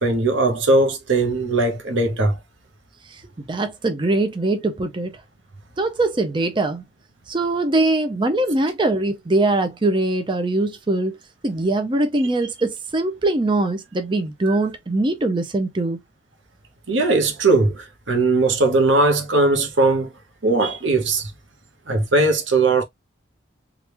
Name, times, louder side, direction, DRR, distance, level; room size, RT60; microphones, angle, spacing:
voice 1, 0.0-2.4 14.4-14.6 16.9-20.1 20.4-21.3 21.9-22.8, right 2 dB, 90° right, 0.9 m, -19 dB
voice 2, 3.1-5.2 5.8-6.8 7.3-11.2 11.4-16.0, right 2 dB, 25° right, 0.5 m, -22 dB
3.3 x 2.4 x 2.9 m
head